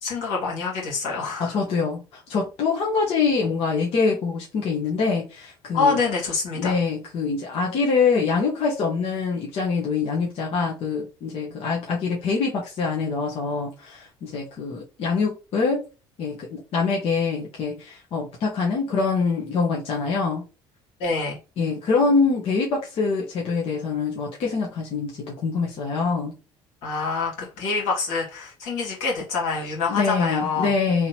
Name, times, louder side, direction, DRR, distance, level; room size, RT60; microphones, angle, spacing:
voice 1, 0.0-1.6 5.7-6.8 21.0-21.4 26.8-30.7, left 4 dB, 90° left, 2.1 m, -26 dB
voice 2, 1.4-6.0 6.5-15.8 16.2-20.4 21.6-26.3 29.9-31.1, left 4 dB, 60° left, 1.2 m, -24 dB
3.7 x 3.1 x 2.9 m
supercardioid pair, 90°, 11 cm